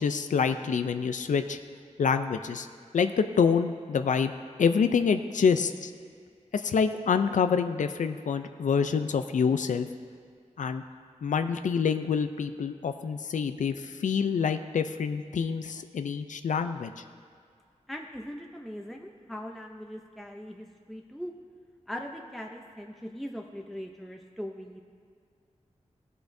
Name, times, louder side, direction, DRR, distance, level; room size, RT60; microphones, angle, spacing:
voice 1, 0.0-1.6 2.0-2.7 2.9-4.3 4.6-5.9 6.5-9.9 10.6-10.8 11.2-17.0, left 6 dB, 90° left, 8 dB, 0.4 m, -26 dB
voice 2, 17.9-21.3 21.9-24.8, equal, ahead, 1 dB, 0.6 m, -40 dB
16.0 x 8.2 x 2.6 m, 2.2 s
wide cardioid pair, 100°, 13 cm